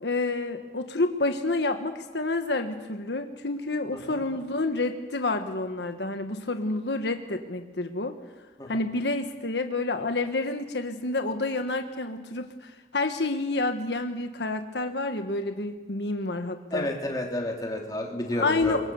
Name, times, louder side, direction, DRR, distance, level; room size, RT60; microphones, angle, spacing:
voice 1, 0.0-8.2 8.7-16.9 18.3-18.9, left 2 dB, 75° left, 7 dB, 1.4 m, -29 dB
voice 2, 16.7-18.8, left 1 dB, 20° left, 1 dB, 3.1 m, -31 dB
26.0 x 23.0 x 7.1 m, 1.3 s
head